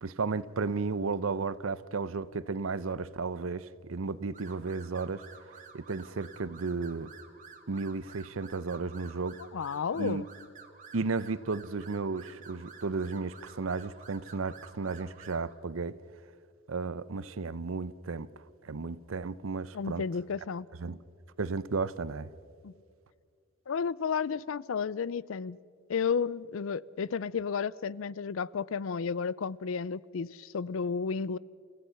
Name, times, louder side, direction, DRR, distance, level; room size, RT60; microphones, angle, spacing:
voice 1, 0.0-5.2 5.7-7.1 7.7-9.4 10.0-10.2 10.9-16.0 16.7-18.3 18.6-20.0 20.8-21.0 21.4-22.3, right 4 dB, 85° right, 0.7 m, -34 dB
sound 1, 4.3-15.5, right 5 dB, 40° right, 2.1 m, -52 dB
voice 2, 9.5-10.3 19.7-20.7 22.6-22.7 23.7-25.6 25.9-31.4, left 6 dB, 80° left, 0.5 m, -32 dB
29.5 x 16.0 x 5.8 m
head